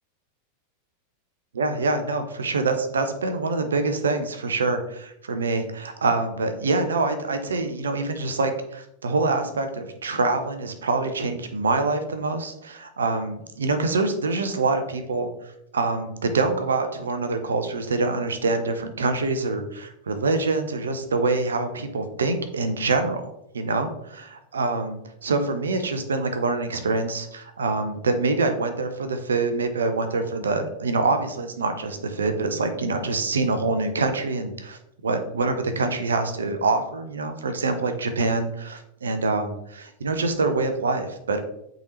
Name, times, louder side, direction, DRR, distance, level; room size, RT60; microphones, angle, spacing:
voice 1, 1.5-15.3 15.7-23.2 23.5-41.4, right 3 dB, 70° right, 8 dB, 0.8 m, -25 dB
8.6 x 3.8 x 3.1 m, 0.76 s
figure-of-eight pair, 90°, 0 cm